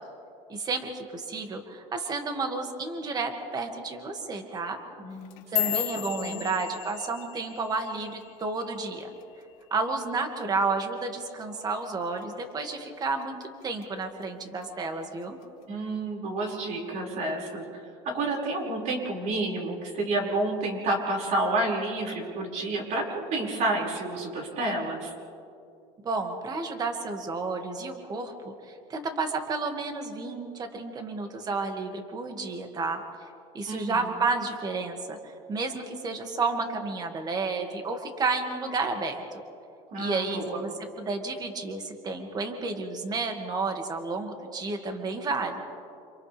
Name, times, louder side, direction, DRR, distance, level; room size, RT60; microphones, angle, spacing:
voice 1, 0.5-4.8 5.5-9.1 9.7-13.4 13.6-15.4 26.0-28.3 28.7-33.0 33.5-39.4 40.0-40.7 41.0-45.6, right 3 dB, 25° right, 4 dB, 2.2 m, -31 dB
voice 2, 5.0-6.4 15.7-25.1 33.7-34.1 39.9-40.6, right 2 dB, 55° right, -1 dB, 5.7 m, -30 dB
sound 1, 5.1-9.5 9.8-10.2 10.6-11.0 11.4-11.6 12.2-12.6 13.0-13.8 14.2-14.6 15.4-15.5, left 19 dB, 75° left, 2.5 m, -34 dB
29.5 x 28.0 x 3.5 m, 2.5 s
cardioid pair, 130°, 15 cm